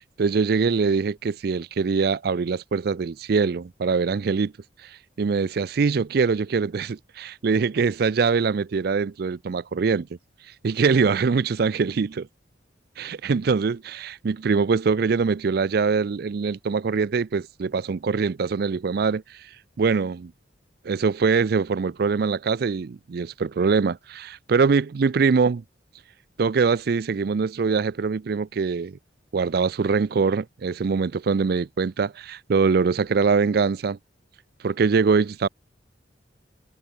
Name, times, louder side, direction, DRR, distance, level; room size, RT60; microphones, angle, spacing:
voice 1, 0.2-4.5 4.8-4.9 5.2-10.1 10.6-12.3 13.0-19.4 19.8-20.3 20.8-25.6 26.4-29.0 29.3-34.0 34.6-35.5, right 5 dB, 55° right, 0.4 m, -23 dB
head